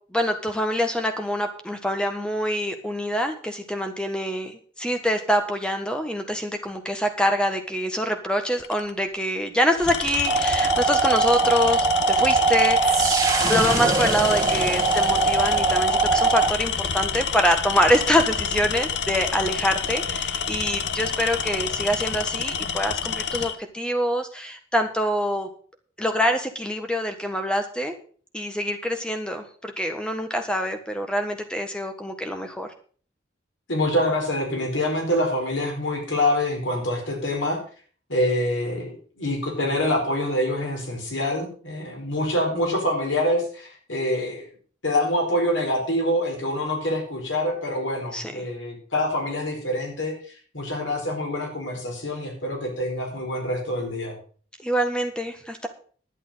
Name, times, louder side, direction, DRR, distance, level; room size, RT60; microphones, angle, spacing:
voice 1, 0.1-13.1 13.5-25.5 26.0-27.9 28.3-32.7 48.1-48.4 54.6-55.7, equal, 5° left, 6 dB, 1.5 m, -25 dB
Tools, 8.6-8.9 9.7-23.6, left 7 dB, 65° left, 0.8 m, -28 dB
sound 1, 10.3-16.5, right 4 dB, 20° right, 1.8 m, -21 dB
voice 2, 33.7-37.6 38.1-44.5 44.8-50.1 50.5-54.2, left 1 dB, 85° left, 1 dB, 4.5 m, -25 dB
11.0 x 9.3 x 5.6 m, 0.43 s
head